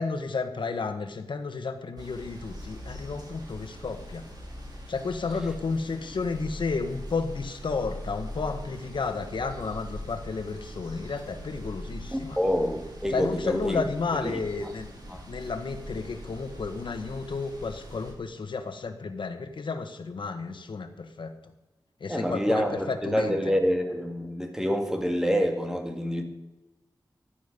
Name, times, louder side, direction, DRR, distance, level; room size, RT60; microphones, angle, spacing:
voice 1, 0.0-4.2 4.9-12.4 13.1-14.9 15.3-21.3 22.0-23.4, left 4 dB, 80° left, 1.4 m, -32 dB
sound 1, 2.0-18.1, equal, 55° right, 3.5 m, -42 dB
voice 2, 12.1-13.8 14.2-14.4 15.1-15.2 22.1-26.2, equal, 5° right, 2.1 m, -27 dB
15.0 x 11.5 x 5.3 m
wide cardioid pair, 100°, 8 cm